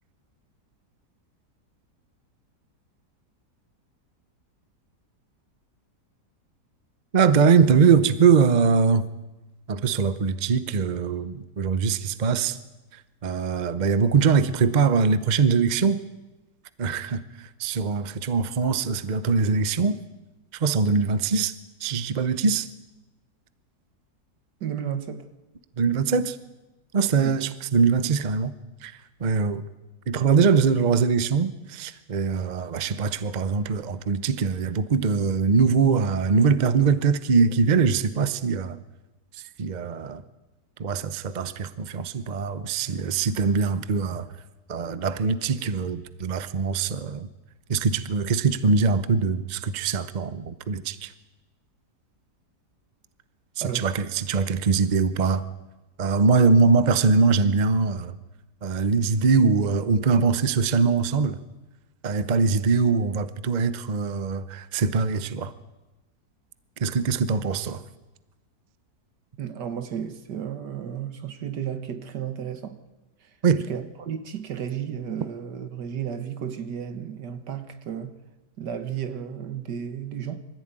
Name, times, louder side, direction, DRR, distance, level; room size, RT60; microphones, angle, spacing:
voice 1, 7.1-9.1 9.7-12.6 13.2-16.0 16.8-20.0 20.5-21.5 21.8-22.7 25.8-26.4 26.9-28.5 28.8-29.6 30.1-38.8 39.6-40.2 40.8-44.3 44.7-47.3 47.7-51.1 53.6-55.4 56.0-58.2 58.6-61.4 62.0-65.5 66.8-67.8 73.4-73.7, right 5 dB, 35° right, 0.7 m, -22 dB
voice 2, 24.6-25.3 27.2-27.4 53.6-53.9 69.4-72.8 73.2-73.3 73.7-78.1 78.6-80.4, right 8 dB, 75° right, 1.9 m, -33 dB
24.0 x 15.0 x 9.0 m
omnidirectional pair, 1.8 m